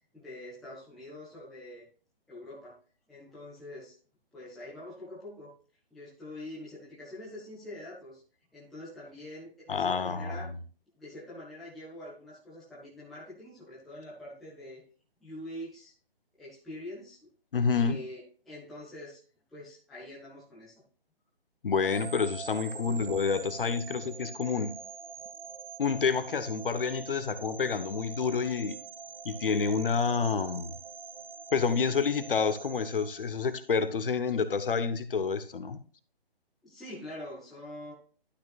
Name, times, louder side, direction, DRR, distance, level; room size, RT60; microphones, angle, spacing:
voice 1, 0.1-1.8 2.3-2.7 3.1-4.0 4.3-5.5 5.9-8.2 8.5-10.5 11.0-14.8 15.2-15.9 16.4-17.2 17.8-19.2 19.5-20.8 36.6-37.9, left 1 dB, ahead, 0.5 m, -45 dB
voice 2, 9.7-10.5 17.5-18.0 21.6-24.7 25.8-28.8 29.2-30.7 31.5-35.8, left 5 dB, 60° left, 1.1 m, -28 dB
sound 1, 21.7-33.9, right 6 dB, 65° right, 0.9 m, -45 dB
11.5 x 6.3 x 2.4 m
figure-of-eight pair, 145°, 30 cm